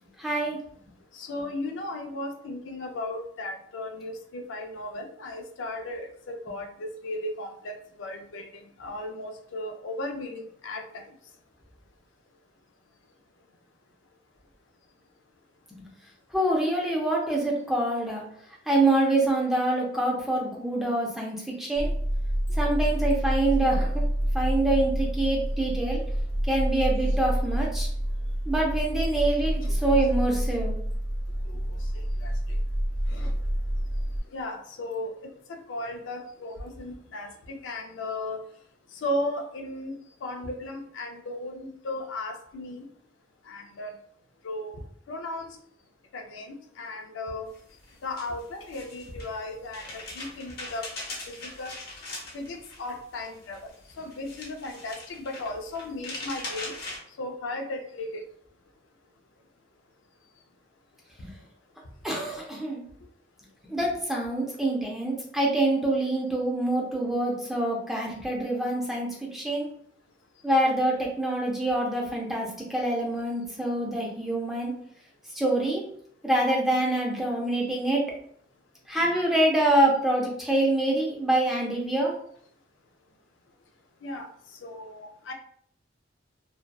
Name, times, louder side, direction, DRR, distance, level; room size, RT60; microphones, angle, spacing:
voice 1, 0.2-0.6 16.3-18.2 18.7-21.9 22.6-23.9 24.3-26.0 26.5-27.9 28.5-30.7 61.2-61.3 62.0-62.8 63.7-69.7 70.4-74.7 75.4-75.8 76.2-78.1 78.9-82.1, right 1 dB, ahead, -2 dB, 0.5 m, -25 dB
voice 2, 1.1-8.5 8.8-11.1 29.6-29.8 31.5-31.6 32.2-32.3 33.1-33.3 34.3-38.4 39.0-42.8 43.5-43.9 44.4-44.8 45.1-45.5 46.1-47.5 48.0-49.8 50.1-50.8 51.3-51.7 52.3-53.6 54.0-56.7 57.2-58.2 84.0-84.3 84.6-85.3, left 1 dB, 85° left, 4 dB, 0.4 m, -35 dB
sound 1, 21.8-34.2, equal, 85° right, 0.5 m, -28 dB
sound 2, 47.5-57.0, left 2 dB, 60° left, 0.8 m, -41 dB
2.6 x 2.2 x 2.2 m, 0.64 s
head